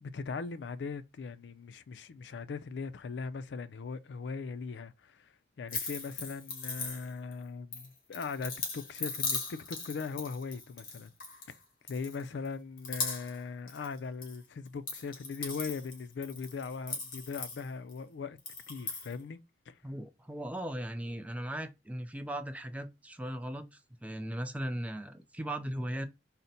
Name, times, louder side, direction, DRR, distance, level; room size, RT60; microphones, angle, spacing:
voice 1, 0.0-5.3 5.6-11.1 11.5-11.6 11.9-18.4 18.7-19.4 19.7-19.8, left 5 dB, 80° left, 0.4 m, -39 dB
sound 1, 5.7-7.3 7.7-11.5 11.9-12.5 12.8-14.3 14.6-18.0 18.4-19.1, left 4 dB, 55° left, 1.7 m, -39 dB
voice 2, 19.8-26.1, right 1 dB, 10° right, 0.4 m, -38 dB
4.0 x 2.1 x 3.9 m
head